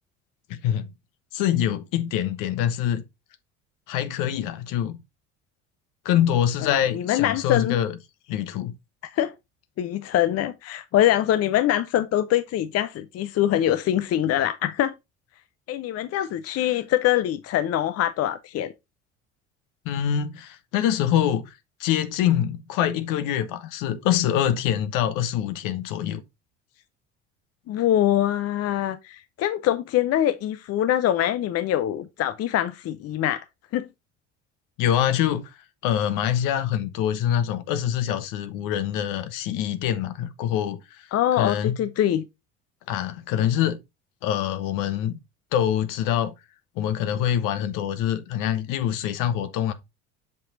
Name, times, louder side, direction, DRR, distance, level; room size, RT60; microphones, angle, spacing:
voice 1, 0.5-0.9 1.3-3.0 3.9-5.0 6.0-8.0 8.3-8.7 19.8-21.5 21.8-26.2 34.8-35.5 35.8-41.1 41.4-41.8 42.9-43.8 44.2-45.2 45.5-46.3 46.8-49.7, left 10 dB, 65° left, 1.0 m, -25 dB
voice 2, 6.6-7.8 9.1-9.3 9.8-14.9 15.7-18.7 27.7-33.4 33.7-33.8 41.1-42.2, left 12 dB, 45° left, 0.6 m, -24 dB
7.4 x 5.9 x 2.6 m
hypercardioid pair, 65°, 34 cm